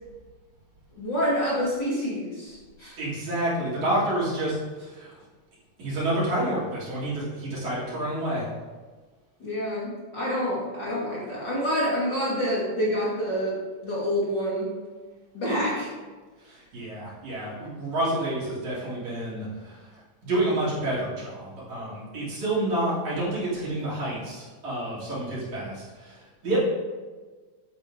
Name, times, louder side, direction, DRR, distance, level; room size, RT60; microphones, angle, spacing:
voice 1, 1.0-3.0 9.4-14.7 15.3-15.9, equal, 50° left, -6 dB, 1.3 m, -27 dB
voice 2, 3.0-5.2 5.8-8.5 16.4-26.6, right 1 dB, 40° right, -7 dB, 3.8 m, -29 dB
11.5 x 7.9 x 3.8 m, 1.4 s
omnidirectional pair, 5.7 m